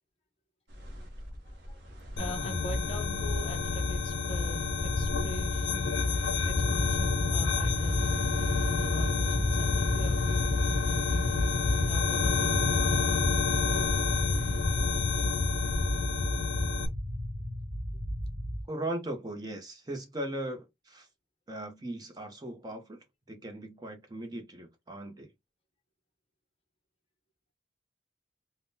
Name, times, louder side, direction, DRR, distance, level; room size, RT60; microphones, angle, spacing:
sound 1, 0.7-16.1, equal, 75° right, 0.7 m, -43 dB
voice 1, 1.4-1.8 2.2-6.0 6.5-8.2 8.7-11.3 11.9-13.3 13.7-14.2, equal, 30° left, 0.7 m, -43 dB
sound 2, 2.2-16.9, left 4 dB, 80° left, 0.5 m, -29 dB
sound 3, 6.6-18.6, left 1 dB, 5° right, 1.8 m, -34 dB
voice 2, 18.7-21.1 21.5-23.0 23.3-25.3, right 1 dB, 20° right, 0.6 m, -38 dB
3.5 x 2.1 x 2.6 m
head